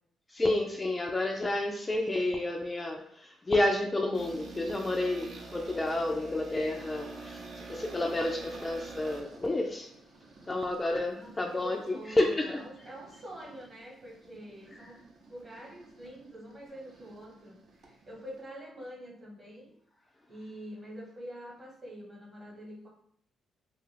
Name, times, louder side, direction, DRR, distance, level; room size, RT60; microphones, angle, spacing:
voice 1, 0.3-9.9 10.5-12.6, left 2 dB, 20° left, 2 dB, 0.3 m, -30 dB
sound 1, 4.1-18.5, right 3 dB, 55° right, 0.6 m, -48 dB
voice 2, 11.1-15.0 15.3-19.7 20.3-22.9, equal, 30° right, -2 dB, 1.0 m, -46 dB
2.6 x 2.4 x 3.3 m, 0.69 s
cardioid pair, 90°, 0 cm